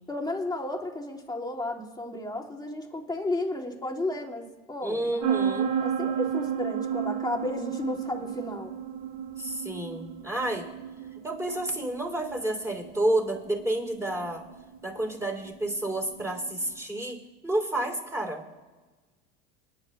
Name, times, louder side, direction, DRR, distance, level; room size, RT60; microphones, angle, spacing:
voice 1, 0.1-5.4 5.8-8.7, left 1 dB, 10° left, -1 dB, 2.1 m, -33 dB
voice 2, 4.8-5.7 9.4-10.7 11.1-14.4 14.8-18.4, right 1 dB, 10° right, 1 dB, 3.1 m, -30 dB
sound 1, 5.2-16.7, right 8 dB, 60° right, 1.2 m, -33 dB
28.5 x 9.8 x 2.2 m, 1.3 s
hypercardioid pair, 90°, 32 cm